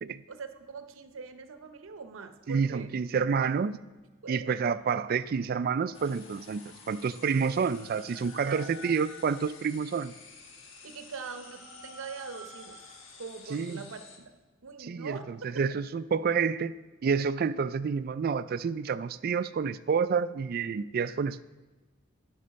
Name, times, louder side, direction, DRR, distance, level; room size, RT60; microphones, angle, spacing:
voice 1, 0.3-2.9 4.2-4.5 8.4-8.7 10.8-14.3 14.6-15.7, right 5 dB, 85° right, 8 dB, 0.7 m, -43 dB
voice 2, 2.5-3.8 4.3-10.1 13.5-13.8 14.9-15.2 15.6-16.8 17.0-21.4, right 6 dB, 45° right, 15 dB, 0.3 m, -29 dB
sound 1, 5.9-14.2, left 3 dB, 70° left, 1.3 m, -49 dB
11.0 x 5.3 x 6.3 m, 1.2 s
head